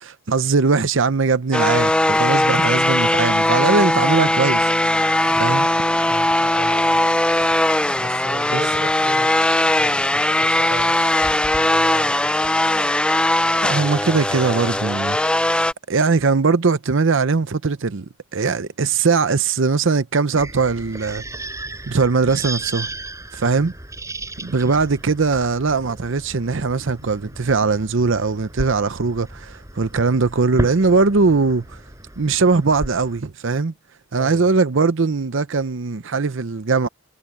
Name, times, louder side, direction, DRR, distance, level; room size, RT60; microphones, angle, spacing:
voice 1, 0.0-4.7 5.3-5.7 8.5-8.6 13.6-15.2 15.9-21.2 21.9-22.9 23.3-23.7 24.4-31.8 32.2-33.7 34.1-36.9, right 4 dB, 60° right, 0.7 m, -20 dB
sound 1, 1.5-15.7, left 1 dB, 5° left, 0.4 m, -19 dB
voice 2, 5.3-5.6 6.1-7.0 8.0-11.0 11.6-12.1 34.2-34.6, right 1 dB, 35° right, 5.3 m, -36 dB
sound 2, 20.4-33.2, right 1 dB, 15° right, 5.0 m, -35 dB
sound 3, 29.9-31.7 32.7-33.0, right 1 dB, 90° right, 6.8 m, -49 dB
head